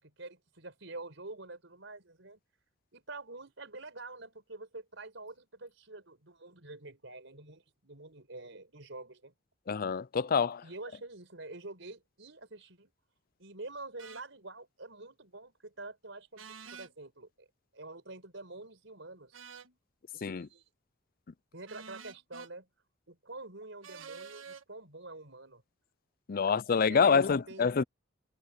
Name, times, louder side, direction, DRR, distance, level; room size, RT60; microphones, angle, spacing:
voice 1, 0.0-2.4 2.9-9.3 10.6-12.9 13.4-17.5 17.7-19.4 20.1-20.6 21.5-22.7 23.1-25.6 26.4-26.5 26.9-27.7, right 2 dB, 70° right, 5.6 m, -47 dB
voice 2, 9.7-10.6 20.2-20.5 26.3-27.8, left 5 dB, 50° left, 0.5 m, -26 dB
sound 1, 14.0-14.2 16.4-16.9 19.3-19.7 21.7-22.5 23.8-24.6, right 6 dB, 90° right, 1.6 m, -48 dB
head